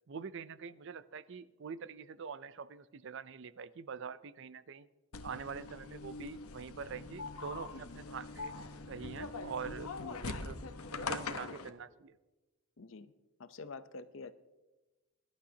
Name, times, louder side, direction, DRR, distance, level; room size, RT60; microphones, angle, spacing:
voice 1, 0.1-4.9 5.2-8.5 8.9-9.9 10.2-10.6 10.9-12.1, right 6 dB, 55° right, 16 dB, 0.5 m, -44 dB
sound 1, 5.1-11.7, left 3 dB, 85° left, 0.9 m, -42 dB
voice 2, 7.7-8.0 9.9-10.4 12.8-13.1 13.4-14.3, left 3 dB, 60° left, 12 dB, 0.7 m, -48 dB
22.5 x 11.5 x 2.8 m, 1.1 s
head